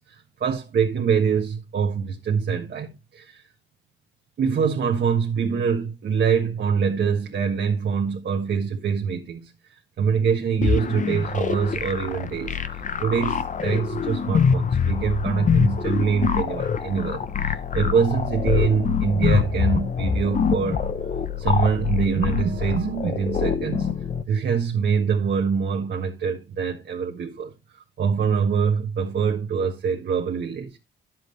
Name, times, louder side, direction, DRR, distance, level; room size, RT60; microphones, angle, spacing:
voice 1, 0.1-3.4 4.4-9.5 10.0-12.6 13.0-17.2 17.7-20.8 21.4-23.9 24.3-27.5 28.0-30.8, right 6 dB, 55° right, 1.5 m, -24 dB
sound 1, 10.6-24.2, left 6 dB, 40° left, 0.9 m, -25 dB
10.5 x 7.6 x 3.2 m
cardioid pair, 90°, 20 cm